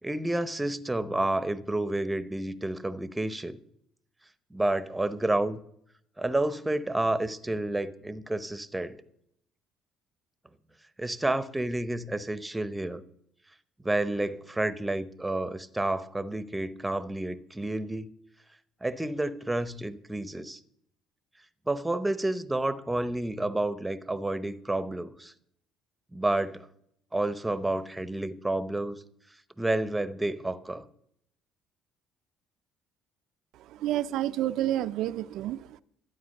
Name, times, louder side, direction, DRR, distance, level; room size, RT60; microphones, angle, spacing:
voice 1, 0.0-3.6 4.5-5.6 6.2-9.0 11.0-13.0 13.8-18.1 18.8-20.6 21.7-25.3 26.1-26.7 27.1-29.0 29.6-30.8, right 1 dB, 10° right, 0.8 m, -30 dB
voice 2, 33.5-35.8, right 13 dB, 75° right, 0.5 m, -30 dB
13.0 x 9.1 x 6.5 m
cardioid pair, 100°, 0 cm